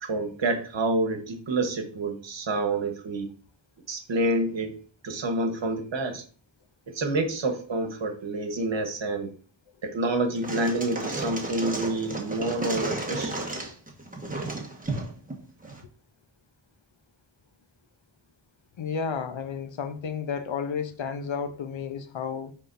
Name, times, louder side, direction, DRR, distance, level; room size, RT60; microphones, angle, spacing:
voice 1, 0.0-3.3 3.9-6.2 6.9-9.3 9.8-13.4, right 2 dB, 65° right, 1.2 m, -28 dB
sound 1, 10.3-15.8, right 2 dB, 15° right, 1.3 m, -33 dB
voice 2, 18.8-22.5, left 6 dB, 70° left, 0.8 m, -32 dB
9.9 x 3.6 x 2.6 m
wide cardioid pair, 75°, 47 cm